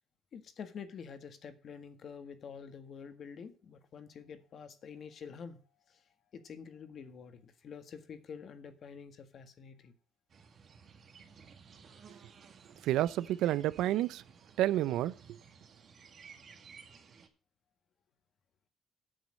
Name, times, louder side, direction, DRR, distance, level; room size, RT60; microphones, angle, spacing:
voice 1, 0.3-5.6 5.9-6.0 6.3-9.9, left 6 dB, 50° left, 1.7 m, -48 dB
sound 1, 10.3-17.3, right 6 dB, 45° right, 2.0 m, -56 dB
voice 2, 12.8-14.2 14.6-15.4, right 13 dB, 85° right, 0.5 m, -30 dB
9.3 x 7.1 x 6.5 m
cardioid pair, 120°, 0 cm